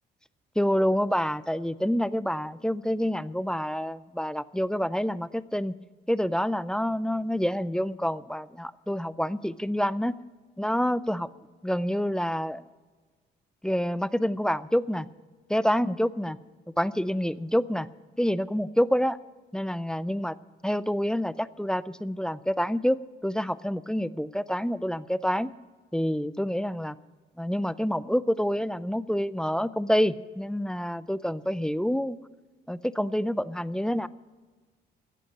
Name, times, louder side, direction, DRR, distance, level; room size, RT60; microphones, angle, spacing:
voice 1, 0.6-5.7 6.1-10.1 10.6-11.3 11.6-12.6 13.6-15.1 15.5-16.4 16.8-17.9 18.2-19.2 19.5-20.4 20.6-25.5 25.9-27.0 27.4-32.2 32.7-34.1, equal, 5° left, 18 dB, 0.4 m, -27 dB
14.0 x 8.4 x 8.6 m, 1.4 s
cardioid pair, 90°, 20 cm